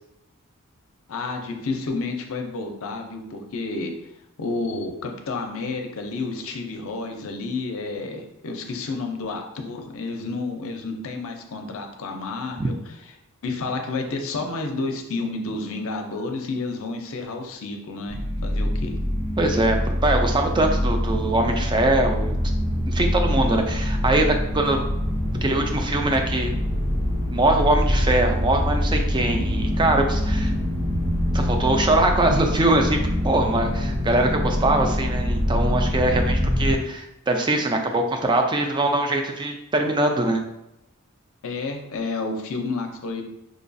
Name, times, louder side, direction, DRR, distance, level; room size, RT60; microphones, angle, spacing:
voice 1, 1.1-3.9 4.4-12.7 13.4-18.9 41.4-43.2, left 3 dB, 65° left, 3 dB, 0.6 m, -30 dB
sound 1, 18.1-36.7, equal, 90° right, 1.3 m, -24 dB
voice 2, 19.4-22.4 22.9-24.8 25.4-26.5 27.3-30.5 31.3-40.4, right 2 dB, 20° right, 4 dB, 0.4 m, -22 dB
5.0 x 2.3 x 2.6 m, 0.86 s
head